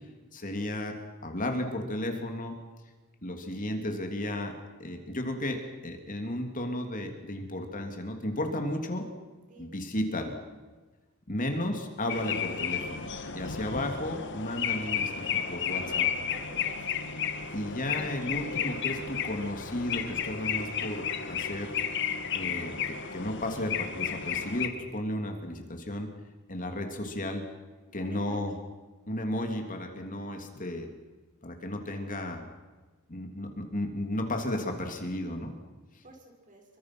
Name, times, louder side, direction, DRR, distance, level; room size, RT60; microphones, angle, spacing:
voice 1, 0.3-1.0 1.2-2.5 3.2-4.5 4.8-9.1 9.6-10.4 11.3-16.1 17.5-21.8 22.3-26.1 26.5-27.4 27.9-28.6 29.1-30.9 31.4-32.4 33.1-35.5, left 1 dB, 35° left, 4 dB, 2.9 m, -34 dB
voice 2, 9.5-9.8 10.1-10.2 11.4-11.6 15.7-17.0 17.5-17.7 28.0-28.4 36.0-36.6, right 1 dB, 35° right, 2 dB, 6.1 m, -49 dB
sound 1, 12.1-24.7, left 7 dB, 55° left, 2.2 m, -33 dB
28.0 x 24.5 x 6.2 m, 1.3 s
head